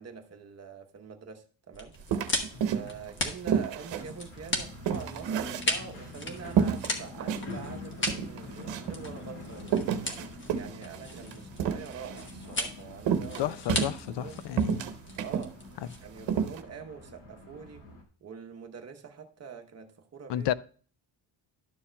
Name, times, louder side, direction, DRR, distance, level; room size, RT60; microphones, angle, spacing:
voice 1, 0.0-2.0 2.7-9.9 10.5-14.4 15.2-15.6 16.0-17.8 18.2-20.5, right 6 dB, 35° right, 1.0 m, -45 dB
sound 1, 1.7-16.4, left 1 dB, 25° left, 1.1 m, -37 dB
sound 2, 2.1-3.1 3.5-6.1 6.6-7.5 7.8-7.9 8.1-9.0 9.6-12.3 13.0-14.3 14.6-15.5 15.9-16.0 16.3-16.6, right 8 dB, 80° right, 0.9 m, -30 dB
sound 3, 2.5-18.0, left 2 dB, 50° left, 2.2 m, -46 dB
voice 2, 13.4-14.8 20.3-20.5, left 12 dB, 70° left, 0.5 m, -31 dB
12.0 x 7.0 x 2.2 m
cardioid pair, 150°, 43 cm